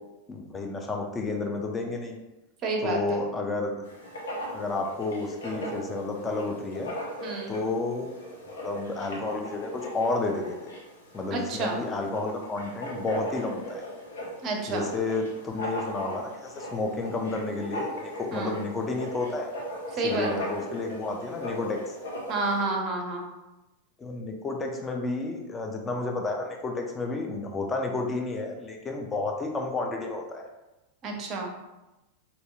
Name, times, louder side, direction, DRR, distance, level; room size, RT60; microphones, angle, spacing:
voice 1, 0.3-2.2 2.8-3.8 4.5-6.9 7.5-8.1 8.5-10.7 11.1-13.8 14.7-19.5 20.0-21.9 24.0-30.5, left 3 dB, 20° left, 1 dB, 0.5 m, -31 dB
voice 2, 2.6-3.2 7.2-7.5 11.3-11.8 14.4-14.9 18.3-18.5 20.0-20.5 22.3-23.3 31.0-31.5, right 3 dB, 35° right, 1 dB, 0.5 m, -29 dB
Writing, 3.8-22.6, equal, 65° left, 0.6 m, -39 dB
2.8 x 2.6 x 2.2 m, 1.0 s
figure-of-eight pair, 90°, 0 cm